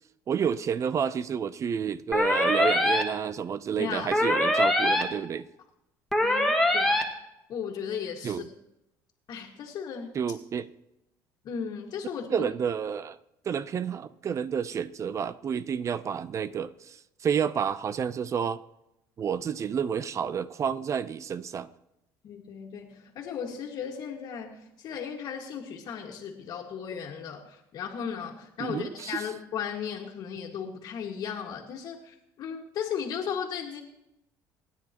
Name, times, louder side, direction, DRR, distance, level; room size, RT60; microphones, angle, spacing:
voice 1, 0.3-5.5 8.2-8.5 10.1-10.7 12.3-13.2 13.5-18.6 19.2-21.7 28.6-29.3, right 7 dB, 40° right, 0.6 m, -30 dB
sound 1, 2.1-3.0 4.1-5.0 6.1-7.0, left 1 dB, ahead, 1.9 m, -23 dB
voice 2, 3.8-4.1 6.2-7.0 7.5-8.4 9.3-10.2 11.4-12.5 22.2-33.8, left 7 dB, 55° left, 1.8 m, -36 dB
27.5 x 9.8 x 3.0 m
cardioid pair, 105°, 8 cm